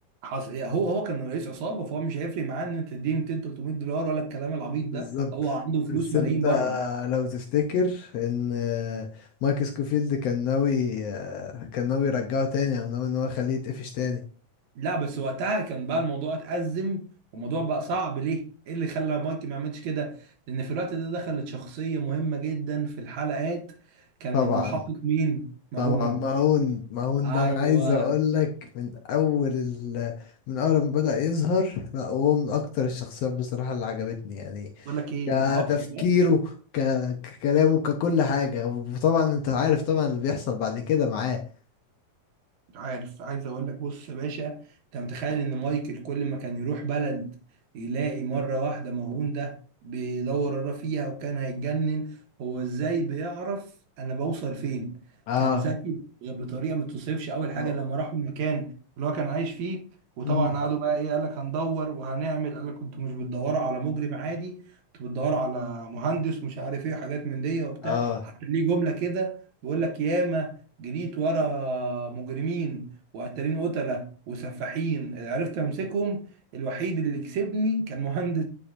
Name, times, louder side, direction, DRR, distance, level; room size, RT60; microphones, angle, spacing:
voice 1, 0.2-6.8 14.8-17.1 17.3-23.7 24.2-26.2 27.2-28.1 34.9-36.1 42.7-44.6 44.9-47.3 47.7-53.7 54.0-55.0 55.4-59.9 60.2-64.6 65.0-69.4 69.6-70.5 70.8-72.9 73.1-76.3 76.5-78.4, right 4 dB, 70° right, 2.2 m, -29 dB
voice 2, 4.9-5.3 5.9-9.1 9.4-14.2 24.3-24.8 25.8-28.5 28.7-30.1 30.5-34.7 35.3-36.4 36.7-41.4 55.3-55.6 57.6-57.7 60.2-60.5 67.8-68.2, left 6 dB, 75° left, 1.4 m, -25 dB
9.9 x 4.6 x 2.5 m
omnidirectional pair, 3.8 m